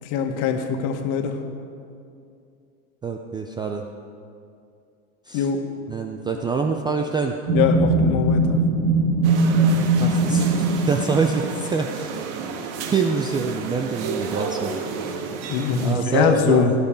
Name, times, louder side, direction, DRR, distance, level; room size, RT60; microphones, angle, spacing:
voice 1, 0.0-1.4 5.3-5.6 7.5-8.6 15.5-16.7, left 6 dB, 50° left, 5 dB, 1.7 m, -22 dB
voice 2, 3.0-3.8 5.3-5.5 5.9-7.4 10.0-12.2 12.9-14.8 15.8-16.7, right 5 dB, 10° right, 3 dB, 0.4 m, -25 dB
sound 1, 7.5-11.4, right 2 dB, 60° right, 2.4 m, -20 dB
sound 2, 9.2-16.0, right 5 dB, 45° right, 1.7 m, -31 dB
17.0 x 10.5 x 5.1 m, 2.5 s
hypercardioid pair, 115°, 43 cm